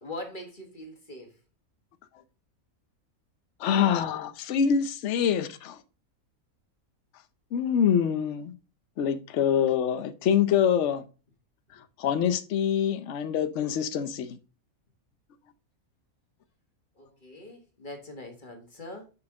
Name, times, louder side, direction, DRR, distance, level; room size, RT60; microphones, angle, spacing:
voice 1, 0.0-1.4 4.0-4.1 16.9-19.1, left 1 dB, 35° left, 1.6 m, -42 dB
voice 2, 3.6-5.8 7.5-8.5 9.0-11.0 12.0-14.4, left 8 dB, 60° left, 1.0 m, -25 dB
5.9 x 5.9 x 3.7 m
omnidirectional pair, 1.5 m